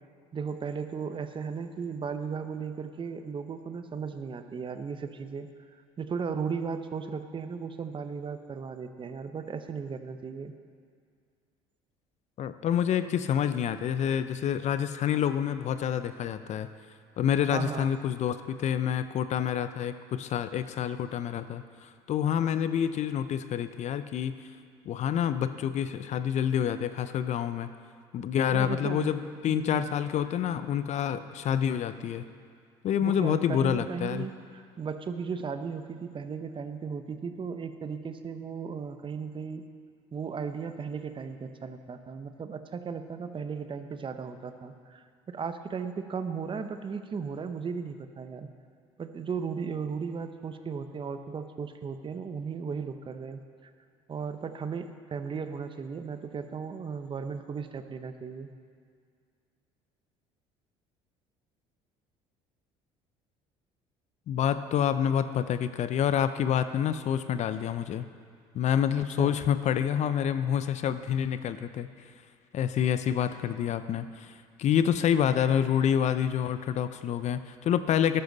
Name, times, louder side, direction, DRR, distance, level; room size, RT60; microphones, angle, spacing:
voice 1, 0.3-10.5 17.5-17.9 28.5-29.1 29.5-29.8 33.0-39.6 40.1-48.5 49.0-53.7 54.1-58.5 69.2-69.3, right 6 dB, 35° right, 9 dB, 0.9 m, -36 dB
voice 2, 12.4-16.7 17.2-24.4 24.9-27.7 28.1-32.3 32.8-34.3 64.3-68.1 68.5-71.9 72.5-74.3 74.6-78.2, left 9 dB, 50° left, 12 dB, 0.6 m, -27 dB
13.0 x 11.5 x 4.0 m, 2.1 s
hypercardioid pair, 70°, 15 cm